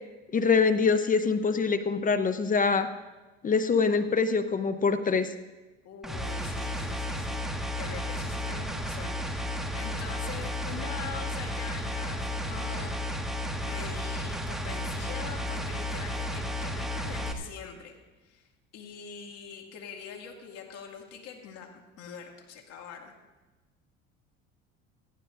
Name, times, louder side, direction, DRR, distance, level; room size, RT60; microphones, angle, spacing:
voice 1, 0.3-2.9 3.4-5.3, left 5 dB, 30° left, 10 dB, 0.8 m, -24 dB
voice 2, 5.8-7.5 7.8-13.0 13.6-18.0 18.2-21.7 22.0-23.1, left 7 dB, 60° left, 2 dB, 2.2 m, -44 dB
sound 1, 6.0-17.3, equal, ahead, 1.4 m, -33 dB
18.5 x 14.5 x 2.5 m, 1.2 s
hypercardioid pair, 75°, 29 cm